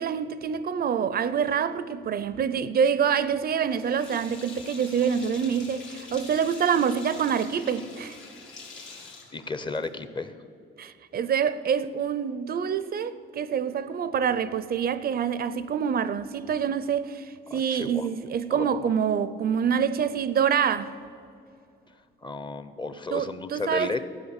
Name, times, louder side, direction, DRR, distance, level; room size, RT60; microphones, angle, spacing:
voice 1, 0.0-8.2 10.8-20.9 23.1-24.0, right 7 dB, 50° right, 0.5 m, -26 dB
Sink (filling or washing), 3.7-10.1, left 4 dB, 75° left, 1.9 m, -45 dB
voice 2, 8.8-10.3 17.5-18.1 18.5-18.9 22.2-24.0, left 3 dB, 25° left, 0.7 m, -34 dB
14.5 x 5.1 x 8.1 m
cardioid pair, 90°, 20 cm